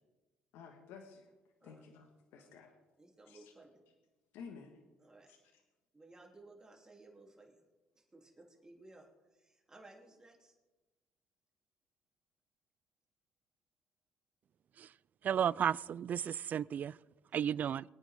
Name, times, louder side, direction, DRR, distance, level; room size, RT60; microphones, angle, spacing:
voice 1, 0.5-1.3 1.6-2.7 3.3-3.5 4.3-4.8 5.3-5.6, left 6 dB, 75° left, 1.7 m, -53 dB
voice 2, 3.0-3.8 5.0-5.3 5.9-7.6 7.9-10.6 17.3-17.5, right 2 dB, 15° right, 3.2 m, -58 dB
voice 3, 15.2-17.0 17.3-17.8, right 9 dB, 45° right, 0.3 m, -33 dB
23.0 x 9.2 x 3.7 m
supercardioid pair, 85°, 4 cm